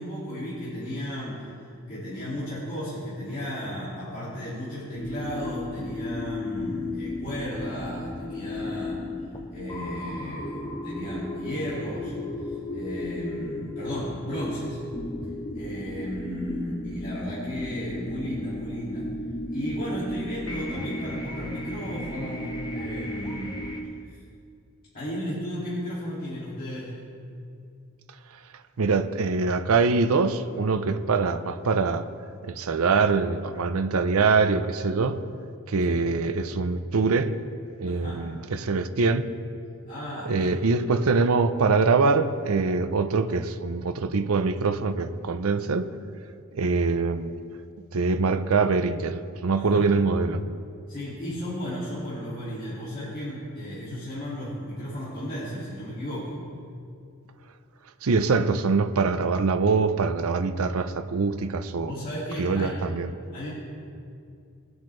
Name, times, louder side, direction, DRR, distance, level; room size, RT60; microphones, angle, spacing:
voice 1, 0.0-1.4 1.9-9.0 9.5-12.1 12.4-14.8 15.5-19.1 19.5-23.6 24.9-26.9 35.8-36.1 37.9-38.2 39.9-40.5 49.5-49.9 50.9-56.4 61.8-62.8 63.3-63.5, equal, 40° left, 2.3 m, -34 dB
sound 1, 4.9-23.8, left 1 dB, 20° left, 0.8 m, -34 dB
voice 2, 28.8-32.1 32.4-35.2 35.7-37.3 37.8-39.2 40.3-45.9 46.5-47.3 47.9-50.4 58.0-61.9 62.4-63.1, right 4 dB, 80° right, 0.6 m, -24 dB
19.5 x 8.0 x 3.2 m
head